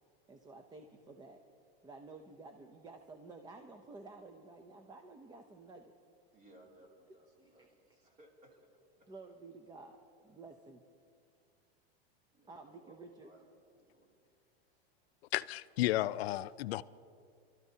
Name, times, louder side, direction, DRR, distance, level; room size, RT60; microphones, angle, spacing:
voice 1, 0.3-1.4 1.8-5.9 7.4-7.7 9.1-10.8 12.5-13.3, right 3 dB, 15° right, 0.6 m, -52 dB
voice 2, 6.3-9.1 10.3-10.6 12.3-14.2 14.7-14.8, right 1 dB, 30° right, 2.9 m, -63 dB
voice 3, 15.3-16.8, left 16 dB, 80° left, 0.5 m, -33 dB
29.0 x 13.0 x 2.8 m
supercardioid pair, 135°, 31 cm